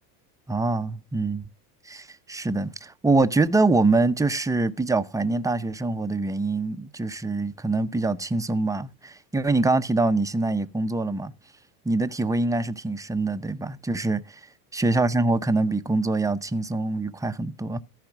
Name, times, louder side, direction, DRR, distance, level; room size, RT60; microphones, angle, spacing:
voice 1, 0.5-1.4 1.9-11.3 11.8-14.4 14.7-17.8, right 3 dB, 5° right, 0.6 m, -24 dB
14.0 x 4.9 x 6.0 m
hypercardioid pair, 95°, 47 cm